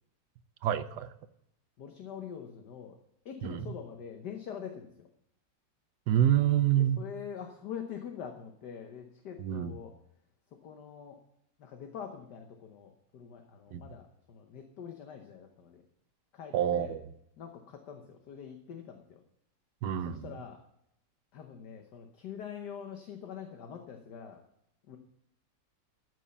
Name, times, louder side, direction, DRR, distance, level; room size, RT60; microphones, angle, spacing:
voice 1, 0.6-1.1 3.4-3.7 6.1-7.0 9.4-9.7 13.7-13.8 16.5-17.0 19.8-20.3, right 11 dB, 70° right, 12 dB, 1.3 m, -27 dB
voice 2, 1.8-3.0 3.3-5.1 6.8-9.9 10.6-11.2 11.6-15.8 16.3-16.9 17.4-19.2 20.0-20.6 21.3-24.4 24.9-25.0, left 8 dB, 65° left, 4 dB, 1.6 m, -44 dB
14.0 x 6.4 x 7.0 m, 0.77 s
omnidirectional pair, 2.0 m